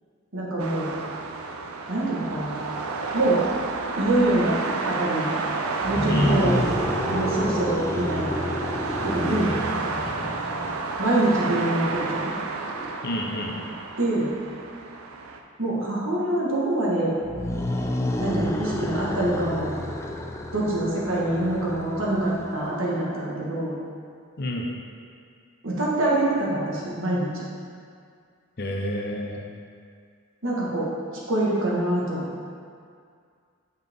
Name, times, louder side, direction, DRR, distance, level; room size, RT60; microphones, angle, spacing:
voice 1, 0.3-0.9 1.9-2.6 3.1-3.4 4.0-4.6 4.8-5.3 5.8-6.6 7.0-8.4 9.0-9.5 11.0-12.3 12.7-12.9 14.0-14.3 15.6-17.1 18.2-19.7 20.5-23.7 25.6-27.4 30.4-30.9 31.3-32.3, right 1 dB, 65° right, -5 dB, 1.5 m, -25 dB
sound 1, 0.6-15.4, right 3 dB, 80° right, 0.6 m, -31 dB
sound 2, 5.8-11.0 17.2-22.9, left 1 dB, 10° left, 0.3 m, -29 dB
voice 2, 13.0-13.6 24.4-24.7 28.6-29.4, left 1 dB, 45° left, 0 dB, 0.8 m, -29 dB
7.7 x 5.7 x 3.6 m, 2.2 s
head